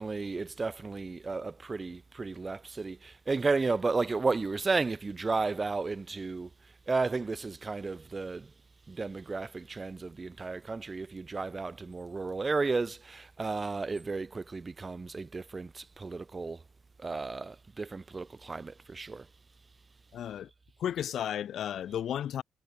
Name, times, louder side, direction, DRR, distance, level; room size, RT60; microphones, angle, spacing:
voice 1, 0.0-6.5 6.9-8.5 8.9-16.6 17.0-19.3, right 3 dB, 25° right, 1.3 m, -33 dB
voice 2, 20.1-20.5 20.8-22.4, left 10 dB, 70° left, 2.0 m, -33 dB
cardioid pair, 90°, 0 cm